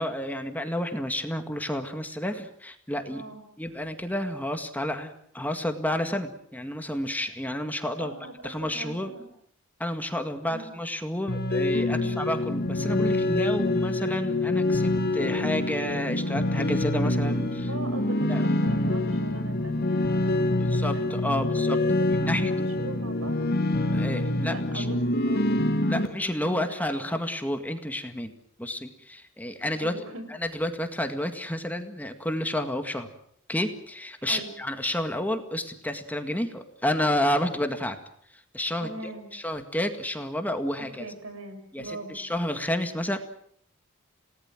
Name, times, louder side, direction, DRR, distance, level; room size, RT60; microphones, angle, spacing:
voice 1, 0.0-3.2 3.6-9.1 9.8-17.7 18.3-18.5 20.6-22.5 23.9-24.9 25.9-28.3 28.6-33.1 33.5-38.0 38.3-41.1 41.7-43.2, left 1 dB, 10° left, 6 dB, 1.9 m, -30 dB
voice 2, 3.0-3.4 8.0-9.3 10.5-10.7 11.9-12.2 17.7-20.9 21.3-21.8 22.2-23.4 24.5-25.4 25.9-27.1 29.8-30.2 34.2-34.5 38.8-39.3 40.8-42.2, right 1 dB, 80° right, 8 dB, 6.0 m, -40 dB
sound 1, 11.3-26.1, left 1 dB, 50° left, 1.9 m, -26 dB
29.0 x 18.5 x 7.5 m, 0.67 s
head